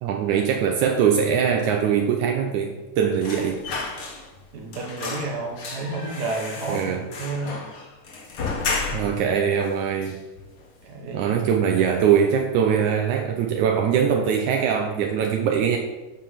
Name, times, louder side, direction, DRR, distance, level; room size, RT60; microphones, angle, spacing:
voice 1, 0.0-3.6 6.7-7.1 8.9-10.2 11.1-15.8, right 7 dB, 75° right, 2 dB, 2.2 m, -22 dB
sound 1, 3.2-4.5 4.7-9.3 9.6-9.7 10.0-10.8 11.2-11.4 11.7-12.4 12.7-12.8, left 4 dB, 50° left, 2.2 m, -33 dB
voice 2, 4.5-7.6 8.9-9.1 10.8-11.3, right 3 dB, 60° right, 0 dB, 1.0 m, -31 dB
13.0 x 4.9 x 5.8 m, 1.1 s
omnidirectional pair, 3.5 m